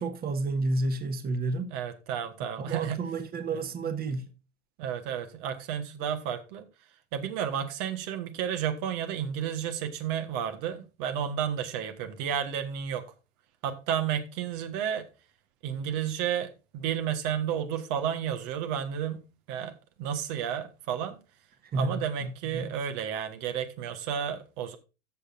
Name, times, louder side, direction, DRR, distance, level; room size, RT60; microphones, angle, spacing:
voice 1, 0.0-1.7 2.5-4.3 21.7-22.7, right 3 dB, 25° right, 1.6 m, -31 dB
voice 2, 1.7-3.0 3.5-3.9 4.8-6.7 7.1-13.0 13.6-15.1 15.6-19.2 19.5-19.7 20.0-21.2 21.7-24.8, right 9 dB, 50° right, 1.5 m, -32 dB
14.0 x 6.7 x 2.6 m
hypercardioid pair, 90°, 37 cm